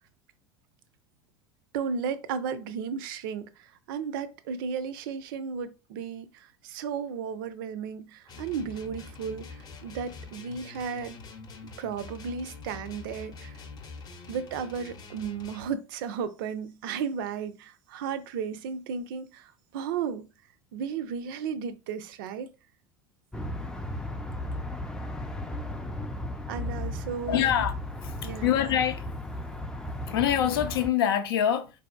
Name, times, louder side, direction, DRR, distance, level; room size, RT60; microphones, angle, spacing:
voice 1, 1.7-11.2 11.6-13.6 14.3-20.3 20.7-22.5 26.5-27.6 28.2-28.6, right 6 dB, 60° right, 0.5 m, -34 dB
sound 1, 8.3-15.7, left 4 dB, 30° left, 0.7 m, -45 dB
sound 2, 23.3-30.9, left 1 dB, 5° left, 0.4 m, -35 dB
voice 2, 27.3-27.7 28.0-29.1 30.1-31.8, left 10 dB, 70° left, 0.6 m, -25 dB
3.9 x 2.7 x 2.3 m
figure-of-eight pair, 75°, 13 cm